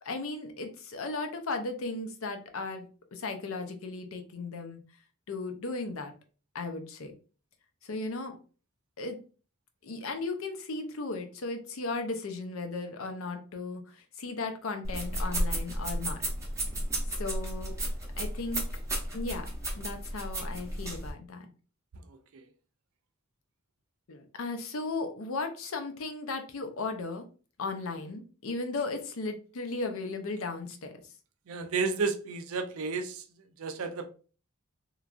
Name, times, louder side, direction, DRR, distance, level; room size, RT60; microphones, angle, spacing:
voice 1, 0.0-4.8 5.3-6.1 6.5-7.1 7.8-8.4 9.0-9.2 9.8-16.2 17.2-17.8 18.2-18.7 19.1-19.5 19.7-21.5 24.1-27.2 27.6-31.0, left 3 dB, 65° left, 0.5 m, -36 dB
sound 1, 14.8-21.1, right 1 dB, 15° right, 0.7 m, -33 dB
voice 2, 31.5-33.2 33.6-34.1, right 4 dB, 65° right, 0.4 m, -31 dB
3.0 x 2.4 x 2.4 m
head